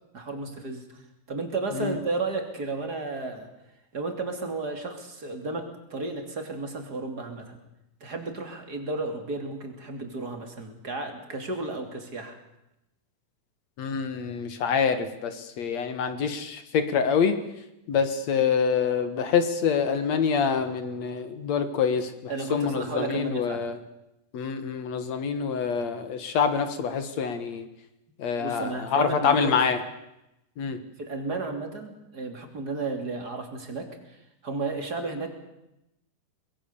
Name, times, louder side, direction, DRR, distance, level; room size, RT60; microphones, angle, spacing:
voice 1, 0.1-1.0 1.3-3.5 3.9-7.6 8.0-12.4 22.3-23.6 28.4-29.6 31.0-34.2 34.4-35.3, right 3 dB, 30° right, 5 dB, 3.2 m, -33 dB
voice 2, 13.8-17.4 17.9-23.8 24.3-27.7 28.2-29.8 30.6-30.8, left 6 dB, 60° left, 10 dB, 2.6 m, -26 dB
24.0 x 21.5 x 7.0 m, 0.88 s
omnidirectional pair, 3.7 m